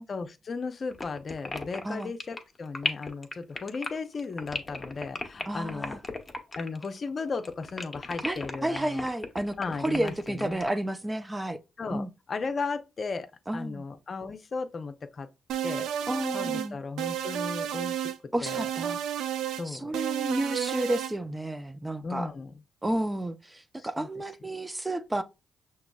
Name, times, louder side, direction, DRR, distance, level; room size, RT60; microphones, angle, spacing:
voice 1, 0.1-6.0 6.6-9.1 9.6-10.6 11.8-13.3 13.5-15.3 15.6-15.9 16.3-18.1 18.4-18.6 19.5-19.9 22.0-22.5 23.8-24.1, left 4 dB, 50° left, 0.7 m, -35 dB
sound 1, 0.9-7.1 7.3-10.8, left 2 dB, 25° left, 1.2 m, -35 dB
voice 2, 5.5-6.0 8.2-11.6 11.9-12.1 13.5-13.8 16.1-16.8 18.3-19.0 19.6-22.3 22.8-25.2, right 1 dB, 15° right, 0.6 m, -31 dB
sound 2, 15.5-16.7 17.0-18.2 18.5-19.6 19.9-21.1, right 10 dB, 85° right, 0.4 m, -31 dB
6.0 x 3.0 x 2.4 m
supercardioid pair, 60°, 0 cm